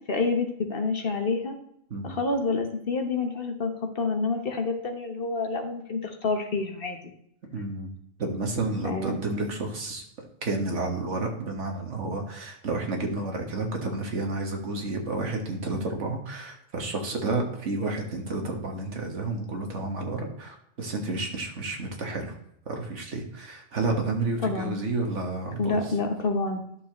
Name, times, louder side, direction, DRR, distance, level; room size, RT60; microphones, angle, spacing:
voice 1, 0.1-1.6 2.0-7.0 8.8-9.2 24.4-24.8 25.6-26.6, left 3 dB, 45° left, 5 dB, 1.3 m, -28 dB
voice 2, 7.5-7.9 8.2-10.0 10.4-22.3 22.7-25.8, right 2 dB, 65° right, 2 dB, 1.9 m, -30 dB
11.0 x 6.8 x 3.1 m, 0.71 s
omnidirectional pair, 1.3 m